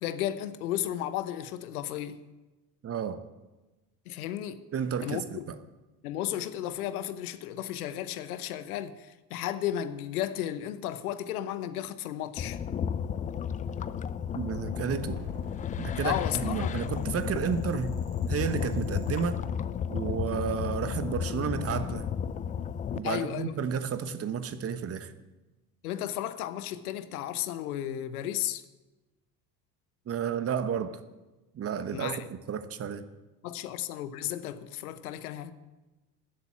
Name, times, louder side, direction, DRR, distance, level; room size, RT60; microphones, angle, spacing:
voice 1, 0.0-2.2 4.1-4.6 5.0-5.5 6.0-12.6 16.0-16.7 23.0-23.5 25.8-28.6 31.9-32.2 33.4-35.5, left 11 dB, 65° left, 1.0 m, -34 dB
voice 2, 2.8-3.2 4.7-5.5 14.3-15.2 15.8-17.9 18.3-19.4 19.9-22.1 22.9-25.1 30.1-31.0 31.5-33.1, right 7 dB, 30° right, 1.1 m, -32 dB
sound 1, 12.4-23.0, left 8 dB, 15° left, 0.4 m, -33 dB
sound 2, 15.1-19.3, equal, 45° right, 5.5 m, -46 dB
13.5 x 8.1 x 8.5 m
figure-of-eight pair, 65°, 48 cm